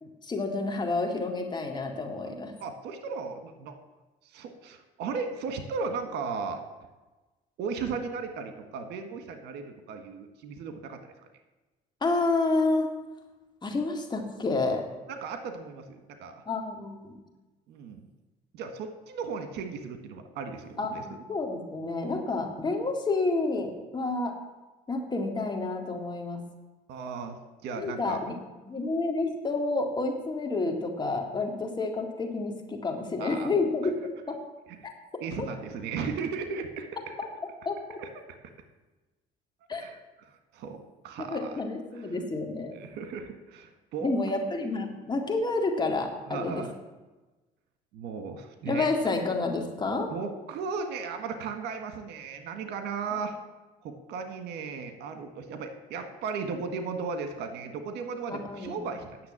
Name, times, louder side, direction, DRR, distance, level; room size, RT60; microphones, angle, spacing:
voice 1, 0.0-2.5 12.0-12.9 13.6-14.9 16.5-17.1 20.8-24.3 24.9-26.4 27.8-28.3 28.7-34.4 34.8-34.9 35.4-35.5 37.2-37.3 37.7-38.0 39.7-39.9 41.2-42.8 44.0-46.6 48.7-50.1 58.4-58.8, left 3 dB, 25° left, 3 dB, 2.1 m, -29 dB
voice 2, 2.6-3.7 4.3-6.6 7.6-11.1 15.1-16.4 17.7-18.1 18.5-21.0 26.9-27.4 27.6-28.2 33.2-33.5 34.8-34.9 35.2-37.0 38.0-38.1 39.7-40.0 40.5-41.5 41.9-42.1 42.7-44.1 46.3-46.7 47.9-48.9 50.1-53.3 53.8-59.2, right 5 dB, 80° right, 7 dB, 1.6 m, -36 dB
9.6 x 7.0 x 8.8 m, 1.1 s
cardioid pair, 110°, 17 cm